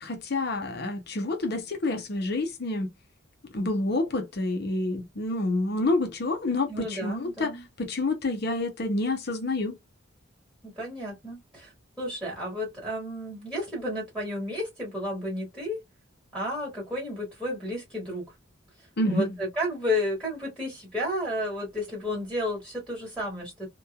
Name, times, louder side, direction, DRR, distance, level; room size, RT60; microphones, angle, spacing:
voice 1, 0.0-2.9 3.5-9.8 19.0-19.4, left 2 dB, 50° left, 0.6 m, -28 dB
voice 2, 6.7-7.6 10.6-11.7 12.0-15.8 16.3-18.2 18.8-23.7, left 1 dB, ahead, 1.6 m, -32 dB
2.9 x 2.3 x 2.2 m
head